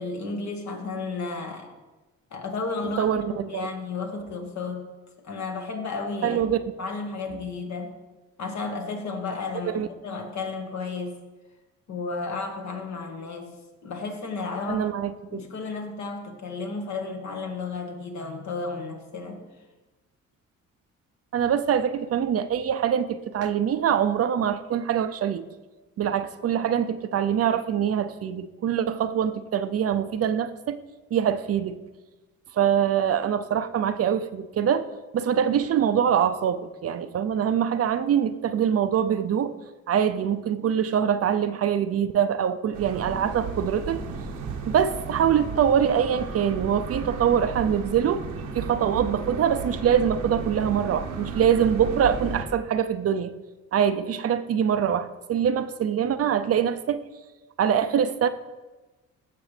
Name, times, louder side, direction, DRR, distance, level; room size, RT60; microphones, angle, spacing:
voice 1, 0.0-1.7 2.3-3.1 3.5-4.9 5.2-6.4 6.8-8.0 8.4-11.1 11.9-13.5 13.8-14.9 15.3-19.4, left 4 dB, 65° left, 3 dB, 1.7 m, -33 dB
voice 2, 2.8-3.7 6.2-6.6 9.6-9.9 14.7-15.4 21.3-25.4 26.0-30.8 31.1-31.8 32.5-34.9 35.1-39.5 39.9-44.0 44.7-48.2 48.5-53.3 53.7-57.0 57.6-58.3, right 8 dB, 50° right, 11 dB, 0.6 m, -24 dB
sound 1, 42.7-52.5, right 4 dB, 90° right, 1.1 m, -34 dB
15.5 x 6.0 x 3.3 m, 1.2 s
cardioid pair, 90°, 30 cm